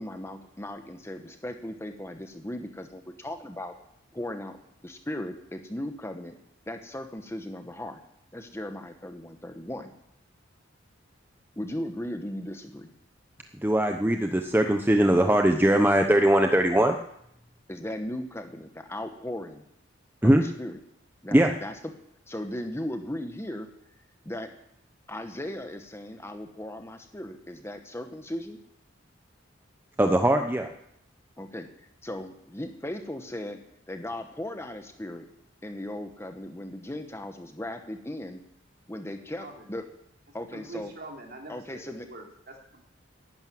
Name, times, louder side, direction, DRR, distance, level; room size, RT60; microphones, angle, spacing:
voice 1, 0.0-3.8 4.1-4.6 4.8-6.3 6.7-8.0 8.3-9.9 11.6-12.9 17.7-19.7 20.2-20.7 21.2-21.7 22.3-23.7 24.2-24.5 25.1-28.6 31.4-33.6 33.9-35.2 35.6-38.4 38.9-39.9 40.3-40.9 41.5-42.1, left 1 dB, 15° left, 6 dB, 1.1 m, -37 dB
voice 2, 13.6-17.0 20.2-20.4 21.3-21.5 30.0-30.7, right 1 dB, 10° right, 5 dB, 0.7 m, -21 dB
voice 3, 40.5-42.9, right 2 dB, 50° right, 1 dB, 3.3 m, -44 dB
11.5 x 11.0 x 9.4 m, 0.75 s
head